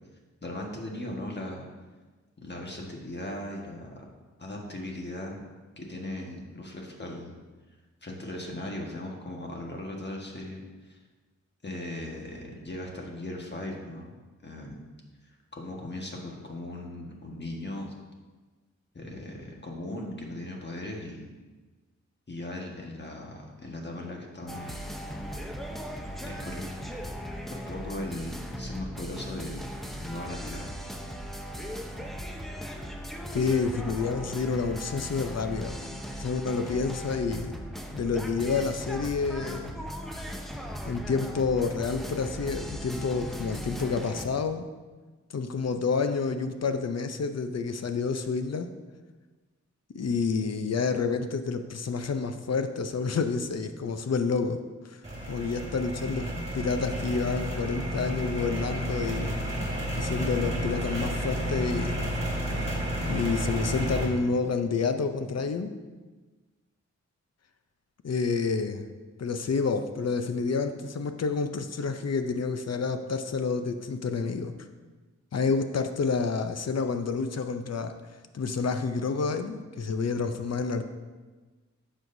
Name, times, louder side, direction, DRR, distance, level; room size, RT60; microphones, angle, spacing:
voice 1, 0.4-1.7 2.4-3.9 4.4-5.4 5.8-7.3 8.0-11.0 11.6-14.8 15.5-17.9 18.9-21.3 22.3-24.9 26.2-26.7 27.5-29.7 30.0-30.7, left 1 dB, 35° left, 0 dB, 1.5 m, -38 dB
sound 1, 24.5-44.3, equal, ahead, 0.7 m, -38 dB
voice 2, 33.3-37.6 37.9-39.7 40.9-44.7 45.3-48.7 49.9-54.6 54.9-55.0 55.3-59.4 60.0-62.0 63.1-65.7 68.0-68.8 69.2-74.5 75.3-77.9 78.3-80.8, left 4 dB, 60° left, 8 dB, 0.6 m, -29 dB
sound 2, 55.0-64.0, equal, 25° right, 2.7 m, -31 dB
10.5 x 6.4 x 2.7 m, 1.3 s
wide cardioid pair, 80°, 29 cm